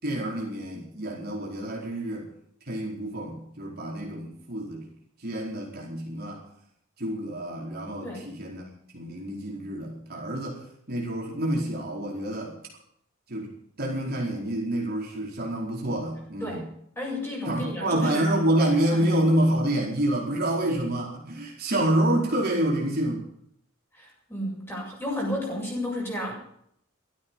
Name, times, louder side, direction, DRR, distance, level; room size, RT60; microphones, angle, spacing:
voice 1, 0.0-2.3 2.6-4.9 5.2-6.4 7.0-8.6 8.9-12.5 13.3-16.6 17.4-23.3, right 1 dB, 50° right, -2 dB, 4.5 m, -27 dB
voice 2, 17.0-18.3 18.9-19.1 23.9-26.3, left 1 dB, 10° left, -3 dB, 7.8 m, -32 dB
16.0 x 13.0 x 5.5 m, 0.70 s
head